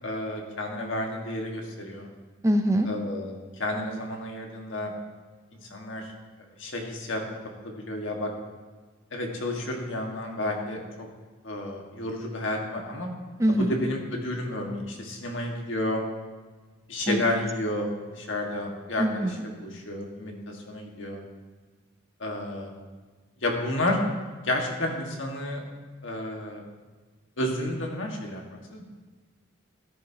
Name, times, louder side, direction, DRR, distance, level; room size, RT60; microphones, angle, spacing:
voice 1, 0.0-2.1 2.8-4.9 5.6-6.1 6.6-7.4 7.6-8.3 9.1-11.1 11.4-13.1 13.6-16.0 16.9-21.2 22.2-22.7 23.4-24.0 24.4-25.6 26.0-26.6 27.4-28.4 28.7-28.8, left 1 dB, 65° left, 1 dB, 1.6 m, -31 dB
voice 2, 2.4-2.9 13.4-13.7 17.1-17.2 19.0-19.3, equal, 15° right, 5 dB, 0.6 m, -23 dB
14.0 x 10.5 x 2.8 m, 1.4 s
head